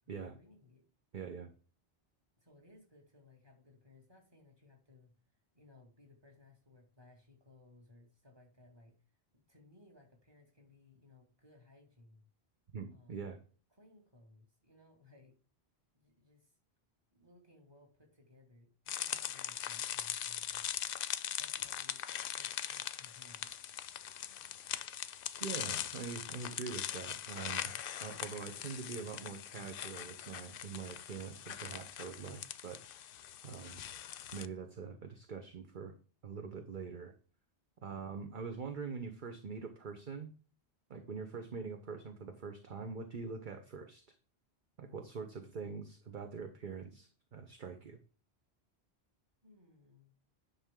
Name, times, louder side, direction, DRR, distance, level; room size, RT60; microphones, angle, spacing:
voice 1, 0.2-0.8 2.4-5.1 5.5-8.9 9.3-12.2 12.9-13.3 13.8-15.3 15.9-16.5 17.1-20.7 21.4-22.0 22.3-23.5 37.9-38.4 49.4-50.1, left 2 dB, 25° right, 1 dB, 2.3 m, -62 dB
voice 2, 1.1-1.5 12.7-13.4 25.4-27.7 28.0-33.2 33.4-33.8 34.3-35.9 36.2-37.1 37.8-40.3 40.9-44.0 44.8-48.0, right 5 dB, 50° right, 6 dB, 1.0 m, -44 dB
sound 1, 18.9-34.5, left 10 dB, 65° left, 0.7 m, -41 dB
10.5 x 5.8 x 3.7 m, 0.39 s
omnidirectional pair, 1.1 m